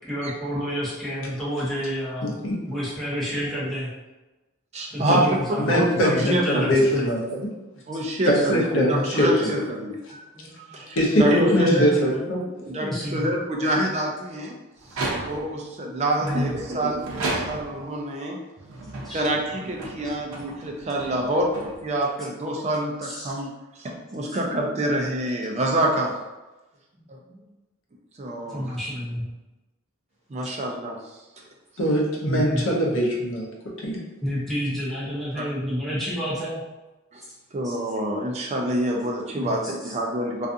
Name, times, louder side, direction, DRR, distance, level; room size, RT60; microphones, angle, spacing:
voice 1, 0.0-2.3 2.7-3.9 4.9-7.0 8.3-8.4 10.3-10.8 11.5-11.9 12.4-13.3 14.3-14.5 16.2-16.5 19.0-19.2 20.0-20.1 23.0-23.3 24.2-24.4 27.2-27.4 28.5-29.3 32.2-32.6 34.2-36.6 37.6-37.8 39.4-39.9, equal, ahead, -9 dB, 0.8 m, -30 dB
voice 2, 2.2-2.6 5.1-5.2 5.6-7.5 8.3-9.5 11.0-12.4 15.0-15.1 16.3-16.5 31.8-33.5 33.8-34.0, equal, 65° left, -2 dB, 0.7 m, -22 dB
voice 3, 4.7-6.8 7.9-10.2 10.7-11.9 12.7-14.6 14.9-18.4 19.1-26.1 28.2-28.8 30.3-31.0 35.3-35.4 37.1-37.2 37.5-40.5, right 1 dB, 30° right, 0 dB, 0.3 m, -26 dB
sound 1, 14.8-15.6 16.2-17.9 18.6-22.1, right 2 dB, 90° right, 0.6 m, -34 dB
2.4 x 2.4 x 2.5 m, 1.1 s
head